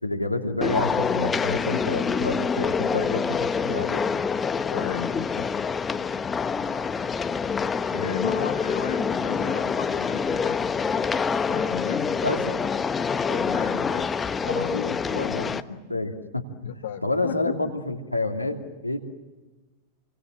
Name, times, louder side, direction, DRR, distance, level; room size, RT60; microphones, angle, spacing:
voice 1, 0.0-4.1 12.2-12.6 14.5-19.0, left 2 dB, 85° left, 2 dB, 2.6 m, -29 dB
sound 1, 0.6-15.6, left 5 dB, 15° left, 1.1 m, -26 dB
voice 2, 4.7-5.6 7.9-10.7 11.5-12.2 12.5-12.6 13.3-14.9 16.7-17.6, left 9 dB, 60° left, 4 dB, 1.7 m, -34 dB
29.5 x 24.5 x 7.7 m, 1.2 s
figure-of-eight pair, 90°, 0 cm